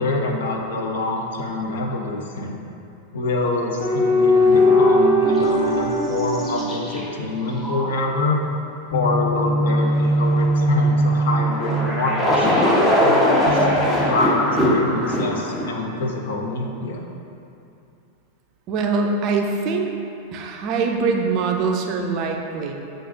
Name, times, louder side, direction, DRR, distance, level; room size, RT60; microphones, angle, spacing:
voice 1, 0.0-2.6 3.1-8.4 8.9-13.6 14.1-17.0, left 2 dB, 60° left, 1 dB, 0.6 m, -25 dB
sound 1, 3.8-7.5 8.9-12.7 13.5-14.7, equal, 45° left, 1.1 m, -20 dB
sound 2, 4.5-5.0 5.4-5.5 6.2-7.1 7.6-7.9 10.6-15.8, left 1 dB, 15° left, 0.7 m, -21 dB
voice 2, 18.7-19.9 20.3-22.7, right 4 dB, 40° right, 2 dB, 0.4 m, -23 dB
7.5 x 2.5 x 2.7 m, 2.8 s
figure-of-eight pair, 90°, 0 cm